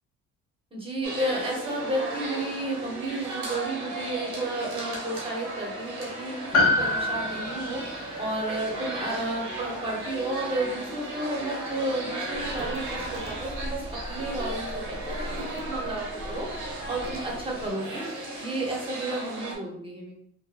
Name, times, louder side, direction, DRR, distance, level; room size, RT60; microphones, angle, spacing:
voice 1, 0.7-7.8 8.2-16.5 16.9-18.0 18.4-20.1, right 1 dB, 20° right, -2 dB, 1.0 m, -32 dB
sound 1, 1.0-19.6, right 2 dB, 85° right, 1.0 m, -36 dB
Piano, 6.5-11.1 11.4-11.5, left 2 dB, 50° left, 0.8 m, -29 dB
sound 2, 12.3-17.7, equal, 45° right, 0.6 m, -39 dB
2.8 x 2.2 x 2.5 m, 0.66 s
cardioid pair, 90°, 30 cm